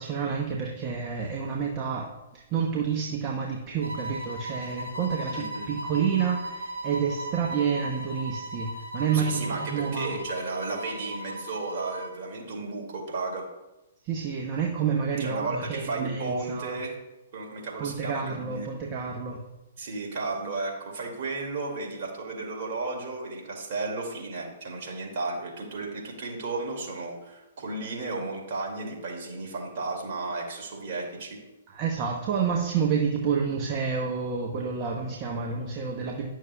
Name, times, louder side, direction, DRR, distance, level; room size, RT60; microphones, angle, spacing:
voice 1, 0.0-10.2 14.0-16.8 17.8-19.4 31.7-36.3, right 6 dB, 35° right, 0 dB, 0.9 m, -29 dB
sound 1, 3.8-12.2, equal, 75° right, 1.5 m, -38 dB
voice 2, 5.3-5.7 9.1-13.5 15.2-16.9 17.3-18.7 19.8-31.4, right 3 dB, 50° right, 0 dB, 2.2 m, -34 dB
10.5 x 6.4 x 2.3 m, 0.99 s
figure-of-eight pair, 125°, 0 cm